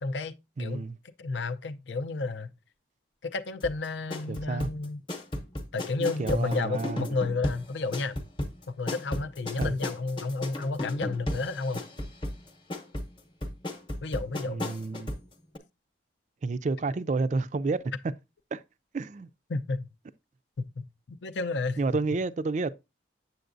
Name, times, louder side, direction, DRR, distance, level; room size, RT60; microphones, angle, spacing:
voice 1, 0.0-0.8 1.2-2.5 3.2-5.0 5.7-8.2 8.7-11.8 14.0-14.6 19.5-19.9 20.6-21.8, left 3 dB, 65° left, 0.5 m, -31 dB
voice 2, 0.6-1.0 4.3-4.7 6.0-7.1 9.6-9.8 14.5-15.1 16.4-17.8 18.5-18.6 18.9-19.3 21.8-22.7, right 3 dB, 40° right, 0.3 m, -30 dB
sound 1, 3.6-15.3 15.5-15.6, left 1 dB, 25° left, 0.8 m, -35 dB
7.9 x 6.9 x 2.5 m
head